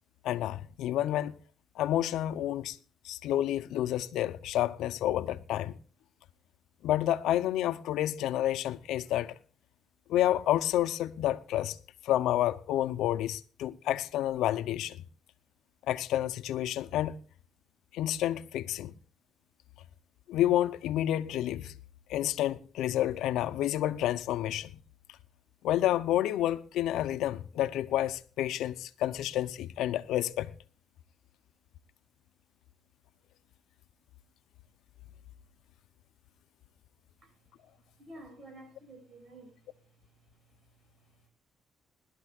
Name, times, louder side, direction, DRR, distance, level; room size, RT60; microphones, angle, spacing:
voice 1, 0.2-1.3 1.8-2.8 3.0-5.7 6.8-9.3 10.1-11.8 12.0-15.0 15.9-17.2 17.9-18.9 20.3-21.7 22.1-24.7 25.6-30.5, left 13 dB, 85° left, 0.6 m, -29 dB
voice 2, 38.0-39.5, right 1 dB, 50° right, 6.7 m, -50 dB
21.0 x 12.0 x 2.4 m
cardioid pair, 90°, 0 cm